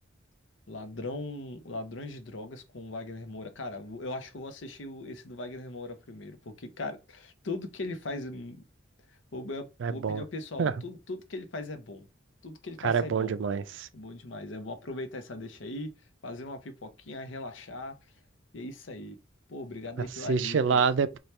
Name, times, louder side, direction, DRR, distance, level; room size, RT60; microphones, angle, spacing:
voice 1, 0.7-8.6 9.3-12.1 12.4-13.4 13.9-15.9 16.2-18.0 18.5-19.2 19.5-20.8, left 2 dB, 90° left, 0.7 m, -39 dB
voice 2, 9.8-10.2 10.6-10.7 12.8-13.9 20.0-21.2, right 5 dB, 80° right, 0.4 m, -27 dB
4.3 x 2.3 x 3.2 m
head